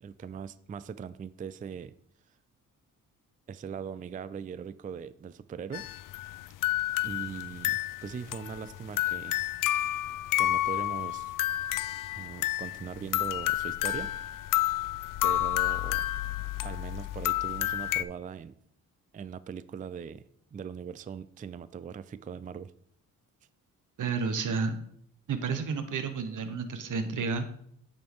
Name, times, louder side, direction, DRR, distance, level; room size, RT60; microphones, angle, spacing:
voice 1, 0.0-1.9 3.5-5.8 7.0-9.4 10.4-11.3 12.2-14.3 15.2-16.0 16.6-18.6 19.1-20.2 20.5-22.7, right 7 dB, 25° right, 16 dB, 0.3 m, -40 dB
sound 1, 5.7-18.0, left 15 dB, 65° left, 0.4 m, -30 dB
voice 2, 24.0-24.7 25.3-27.5, right 5 dB, 60° right, 8 dB, 1.1 m, -31 dB
8.6 x 4.4 x 4.7 m, 0.66 s
cardioid pair, 65°, 35 cm